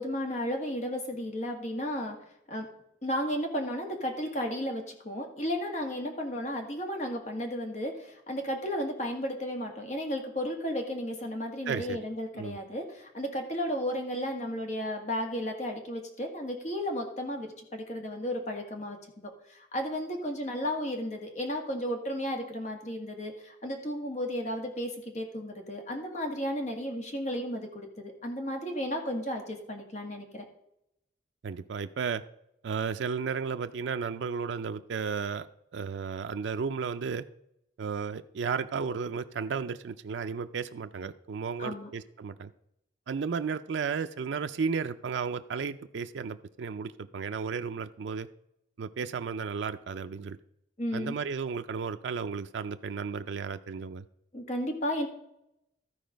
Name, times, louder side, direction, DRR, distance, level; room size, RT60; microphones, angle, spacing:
voice 1, 0.0-2.2 2.5-2.7 3.0-30.5 41.6-41.9 50.8-51.2 54.3-55.1, equal, 40° left, 3 dB, 1.8 m, -34 dB
voice 2, 11.7-12.0 12.3-12.6 31.4-32.2 32.6-35.5 35.7-37.2 37.8-42.5 43.1-48.3 48.8-50.4 50.9-54.0, right 5 dB, 75° right, 9 dB, 0.4 m, -33 dB
14.0 x 4.6 x 5.1 m, 0.78 s
head